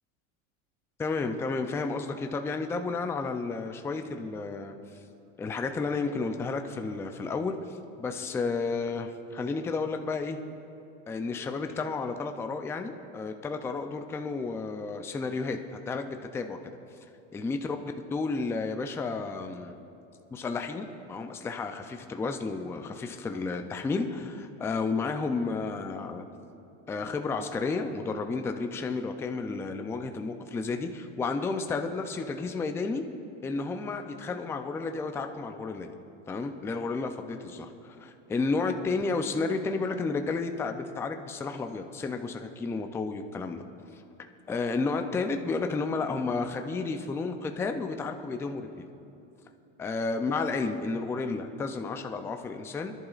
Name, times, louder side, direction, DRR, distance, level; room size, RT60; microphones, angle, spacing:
voice 1, 1.0-4.7 5.4-10.4 11.1-16.7 17.3-19.7 20.3-26.2 26.9-33.0 33.4-35.9 36.3-43.6 43.9-44.0 44.5-48.8 49.8-52.9, left 4 dB, 10° left, 6 dB, 0.4 m, -32 dB
25.5 x 11.0 x 2.4 m, 2.8 s
supercardioid pair, 135°, 35 cm